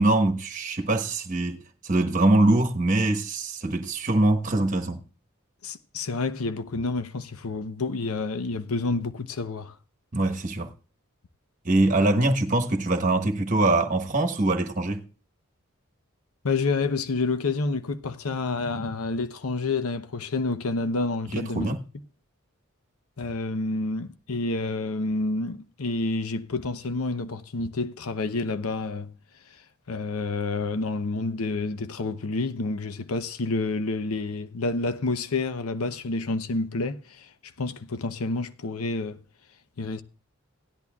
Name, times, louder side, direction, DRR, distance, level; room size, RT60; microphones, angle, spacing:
voice 1, 0.0-5.0 10.1-10.7 11.6-15.0 21.3-21.8, right 2 dB, 35° right, 1.1 m, -23 dB
voice 2, 5.6-9.8 16.4-21.8 23.2-29.1 29.9-37.3 37.6-39.2 39.8-40.0, left 3 dB, 90° left, 0.8 m, -29 dB
17.0 x 11.0 x 2.3 m
head